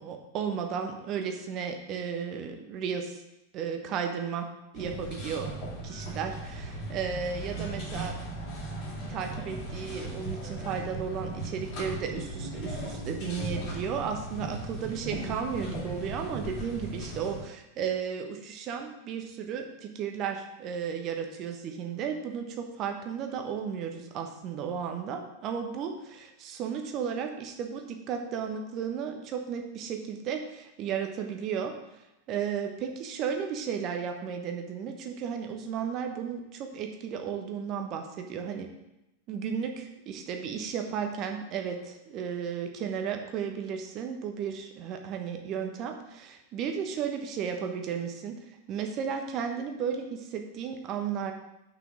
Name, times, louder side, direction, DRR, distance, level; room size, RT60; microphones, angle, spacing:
voice 1, 0.0-3.2 3.5-4.4 4.7-8.2 9.1-31.7 32.3-38.7 39.3-51.3, right 7 dB, 35° right, 4 dB, 1.2 m, -34 dB
sound 1, 4.7-17.4, right 1 dB, 45° left, 3.0 m, -37 dB
6.0 x 5.9 x 7.1 m, 0.91 s
figure-of-eight pair, 90°, 0 cm